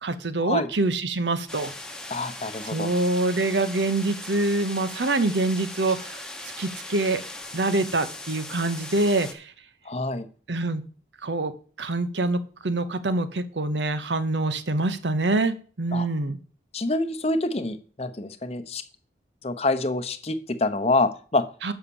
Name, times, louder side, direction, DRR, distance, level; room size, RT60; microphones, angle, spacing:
voice 1, 0.0-1.7 2.7-7.2 7.5-9.5 10.5-10.8 11.2-11.5 11.8-16.4 21.6-21.7, right 2 dB, 85° right, 11 dB, 0.9 m, -25 dB
sound 1, 1.5-9.3, left 2 dB, 5° left, 0.8 m, -39 dB
voice 2, 2.1-2.9 9.8-10.3 15.9-16.1 16.7-18.8 19.4-21.4, left 2 dB, 35° left, 10 dB, 0.7 m, -26 dB
7.1 x 5.6 x 6.9 m, 0.41 s
head